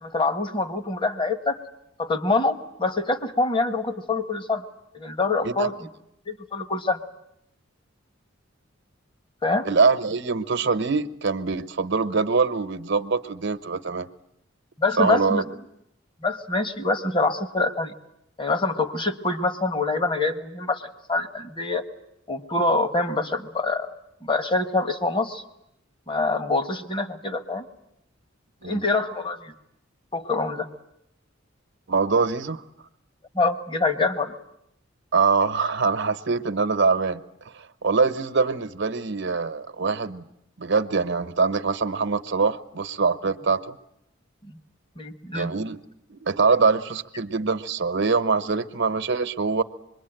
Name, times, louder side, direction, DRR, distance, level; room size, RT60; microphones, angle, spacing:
voice 1, 0.0-1.6 2.0-4.6 4.9-5.7 6.3-7.0 9.4-9.7 14.8-15.4 16.2-17.9 18.4-21.8 22.3-23.9 24.2-25.4 26.1-27.6 28.6-29.5 30.1-30.7 33.3-34.3 44.5-44.6 45.0-45.5, left 3 dB, 25° left, 9 dB, 1.3 m, -25 dB
voice 2, 9.6-14.1 15.0-15.4 28.6-28.8 31.9-32.6 35.1-37.2 37.5-40.2 40.6-43.7 45.3-45.8 46.1-49.6, right 4 dB, 60° right, 10 dB, 1.0 m, -23 dB
25.5 x 22.0 x 9.1 m, 0.79 s
head